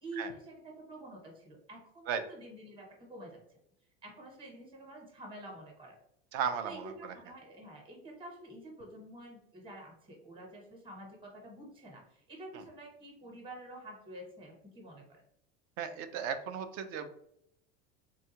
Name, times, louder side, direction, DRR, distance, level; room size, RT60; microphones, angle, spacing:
voice 1, 0.0-3.4 4.0-6.0 6.6-15.2, right 1 dB, 15° right, 0 dB, 0.9 m, -48 dB
voice 2, 6.3-7.1 15.8-17.1, right 7 dB, 50° right, 9 dB, 0.5 m, -35 dB
3.5 x 2.3 x 2.8 m, 0.74 s
supercardioid pair, 120°, 29 cm